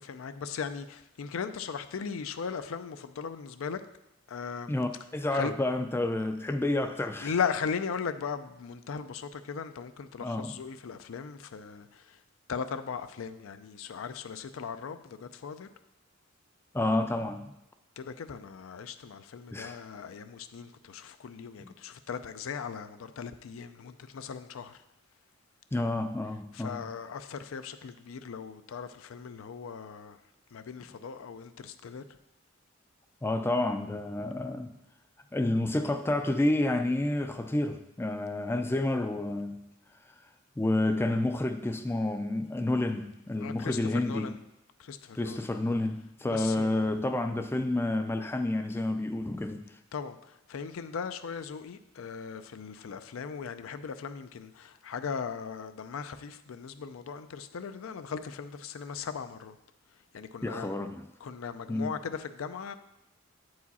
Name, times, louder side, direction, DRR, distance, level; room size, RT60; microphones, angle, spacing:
voice 1, 0.0-3.8 4.3-4.7 5.3-5.5 7.2-12.2 12.5-15.7 18.0-24.8 26.5-30.2 30.5-32.0 43.4-44.4 44.8-45.5 46.3-47.0 49.9-59.6 60.1-60.7 61.2-62.7, left 6 dB, 75° left, 11 dB, 0.4 m, -38 dB
voice 2, 4.7-7.3 10.2-10.5 16.7-17.5 19.5-19.8 21.6-21.7 25.7-26.8 33.2-34.7 35.3-39.7 40.6-44.3 45.2-49.6 60.4-61.0 61.7-61.9, left 2 dB, 10° left, 8 dB, 0.3 m, -29 dB
8.2 x 4.8 x 4.1 m, 0.87 s
head